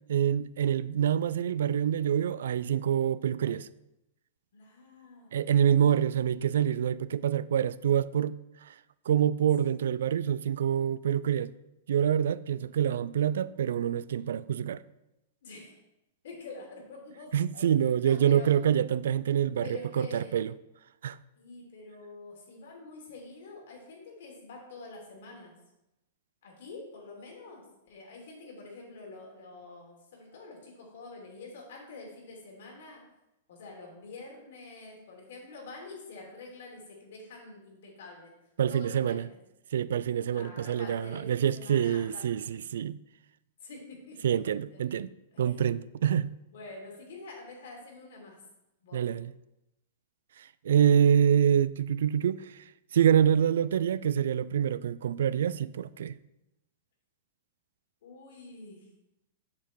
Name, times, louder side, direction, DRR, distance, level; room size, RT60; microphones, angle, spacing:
voice 1, 0.1-3.7 5.3-8.4 9.1-11.5 11.9-14.8 17.3-20.5 21.0-21.2 38.6-39.3 39.7-43.0 44.2-45.1 45.4-46.3 48.9-49.3 50.6-52.5 52.9-56.1, right 9 dB, 80° right, 0.3 m, -26 dB
voice 2, 4.5-5.4 5.9-6.0 12.4-12.6 15.4-15.8 16.2-17.7 18.0-18.5 19.6-20.4 21.4-25.5 26.4-33.0 33.5-38.3 38.7-39.2 40.3-42.2 43.6-45.0 45.3-45.5 46.5-48.4 48.8-49.0 58.0-58.9, left 3 dB, 70° left, 3.1 m, -47 dB
7.2 x 7.0 x 4.6 m
supercardioid pair, 155°, 0 cm